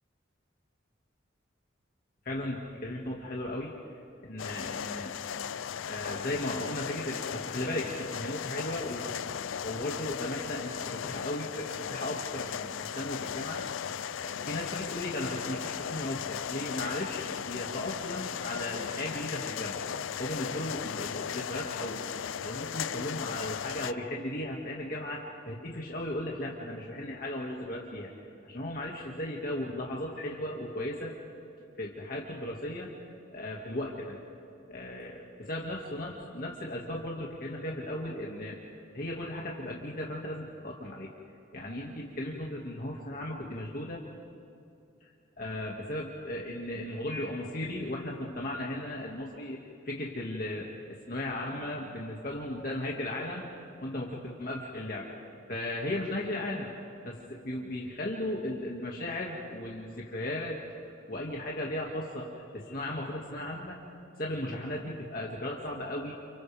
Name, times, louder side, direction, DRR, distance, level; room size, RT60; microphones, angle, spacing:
voice 1, 2.3-3.7 4.2-5.1 5.9-9.2 9.6-13.9 14.2-19.8 20.2-28.1 28.4-31.1 31.8-32.9 33.3-34.2 34.7-38.6 38.9-41.1 41.5-44.0 45.4-49.6 49.8-53.5 53.8-55.2 55.5-56.7 57.0-60.6 61.1-63.8 64.2-66.1, left 1 dB, 45° left, -3 dB, 2.1 m, -36 dB
sound 1, 4.4-23.9, left 8 dB, 80° left, 0.5 m, -37 dB
29.5 x 29.5 x 3.5 m, 2.5 s
head